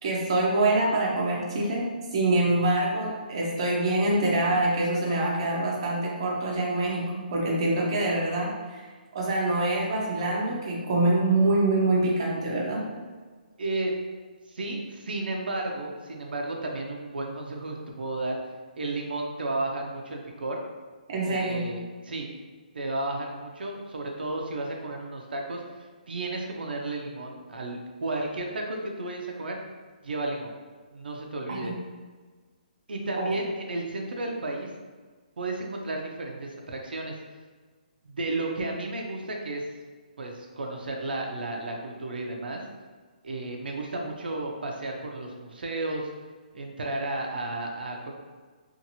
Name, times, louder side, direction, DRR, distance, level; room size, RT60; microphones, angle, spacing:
voice 1, 0.0-1.8 2.1-8.9 9.1-12.8 21.1-21.7 31.5-31.8 33.2-33.3, right 2 dB, 30° right, -4 dB, 0.5 m, -25 dB
voice 2, 13.6-13.9 14.5-18.4 18.8-20.6 21.3-22.3 22.7-29.6 30.0-30.5 30.9-31.7 32.9-34.7 35.4-37.1 38.0-39.6 40.2-42.6 43.2-46.1 46.5-48.1, right 2 dB, 85° right, 1 dB, 0.5 m, -33 dB
2.7 x 2.5 x 2.7 m, 1.4 s
hypercardioid pair, 175°, 5 cm